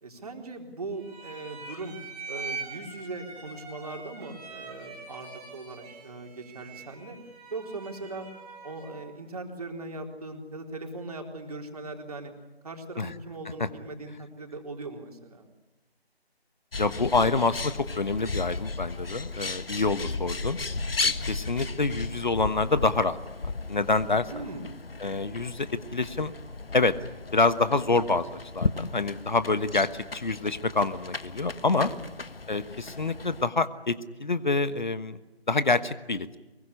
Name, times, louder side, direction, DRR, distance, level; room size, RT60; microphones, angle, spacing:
voice 1, 0.0-2.0 2.3-7.2 7.5-8.3 8.6-12.3 12.6-15.5 24.3-24.7 31.7-32.0, right 3 dB, 35° right, 3 dB, 4.0 m, -39 dB
sound 1, 1.0-9.1, right 4 dB, 5° right, 2.1 m, -43 dB
Bird, 16.7-33.5, left 3 dB, 65° left, 1.4 m, -35 dB
voice 2, 16.8-20.6 21.0-24.4 25.0-26.3 26.7-27.0 27.3-31.9 32.5-35.2 35.5-36.4, left 3 dB, 50° left, 14 dB, 1.2 m, -27 dB
24.0 x 22.5 x 9.9 m, 1.1 s
figure-of-eight pair, 160°, 31 cm